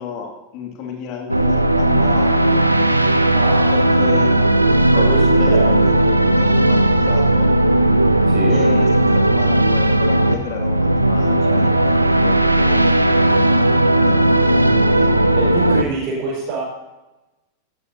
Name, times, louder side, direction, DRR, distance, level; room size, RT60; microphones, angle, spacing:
voice 1, 0.0-2.6 3.7-4.6 4.9-6.0 6.3-7.5 8.5-15.1, left 6 dB, 40° left, 1 dB, 2.4 m, -32 dB
sound 1, 1.3-15.8, right 1 dB, 85° right, 0.7 m, -15 dB
voice 2, 3.3-3.7 4.9-6.0 8.3-8.6 15.3-16.6, right 3 dB, 40° right, -6 dB, 5.0 m, -25 dB
16.5 x 13.5 x 2.8 m, 1.0 s
figure-of-eight pair, 90°, 0 cm